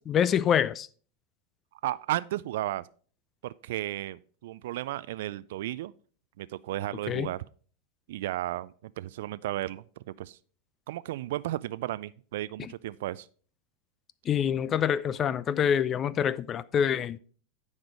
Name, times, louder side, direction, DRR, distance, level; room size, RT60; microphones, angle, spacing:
voice 1, 0.1-0.9 7.1-7.3 12.6-12.7 14.3-17.2, left 8 dB, 30° left, 0.4 m, -26 dB
voice 2, 1.8-2.9 3.4-5.9 6.4-7.4 8.1-9.8 10.2-10.4 10.9-13.3, right 15 dB, 65° right, 0.3 m, -34 dB
9.5 x 5.1 x 5.1 m
hypercardioid pair, 90°, 0 cm